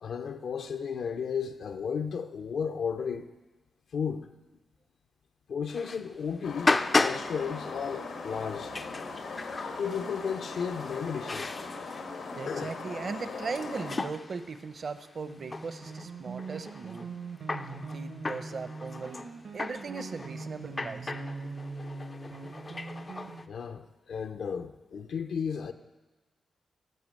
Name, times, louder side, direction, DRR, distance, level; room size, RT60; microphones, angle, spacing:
voice 1, 0.0-3.3 3.9-4.3 5.5-8.8 9.8-11.5 12.5-12.7 23.5-25.7, left 6 dB, 75° left, 0.6 m, -34 dB
sound 1, 5.7-23.5, left 3 dB, 30° left, 0.4 m, -35 dB
sound 2, 6.4-14.0, left 4 dB, 90° left, 1.6 m, -39 dB
voice 2, 12.4-17.1 17.7-19.2 19.5-21.1, right 4 dB, 45° right, 0.7 m, -38 dB
sound 3, 15.2-23.5, right 3 dB, 80° right, 1.2 m, -42 dB
14.5 x 5.8 x 7.6 m
wide cardioid pair, 140°, 0 cm